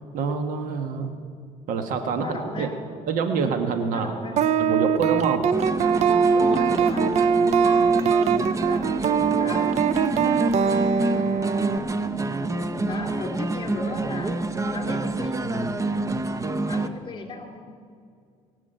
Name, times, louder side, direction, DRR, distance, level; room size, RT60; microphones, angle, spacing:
voice 1, 0.1-1.1 1.7-2.7 3.1-4.1 4.6-5.5, right 5 dB, 75° right, 7 dB, 1.5 m, -26 dB
voice 2, 2.1-2.7 3.3-3.4 3.9-4.4 6.3-7.0 8.6-8.9 9.3-9.7 12.9-14.3 14.7-15.4 16.7-17.6, left 3 dB, 35° left, 4 dB, 2.9 m, -36 dB
sound 1, 4.4-11.8, right 7 dB, 55° right, 0.6 m, -22 dB
sound 2, 5.5-16.9, right 2 dB, 20° right, 0.8 m, -27 dB
21.5 x 7.4 x 9.0 m, 2.3 s
cardioid pair, 100°, 14 cm